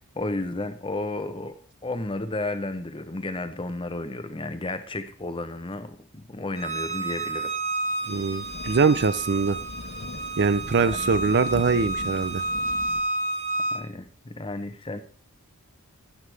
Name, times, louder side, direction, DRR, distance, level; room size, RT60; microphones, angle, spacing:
voice 1, 0.0-7.5 10.7-11.0 13.7-15.0, left 2 dB, 25° left, 10 dB, 0.9 m, -33 dB
Bowed string instrument, 6.6-13.8, right 2 dB, 30° right, 1.4 m, -30 dB
Thunder, 8.0-13.0, left 1 dB, 70° left, 1.5 m, -40 dB
voice 2, 8.1-9.6 10.4-12.4, right 4 dB, 55° right, 14 dB, 0.5 m, -23 dB
12.5 x 9.4 x 3.4 m, 0.41 s
head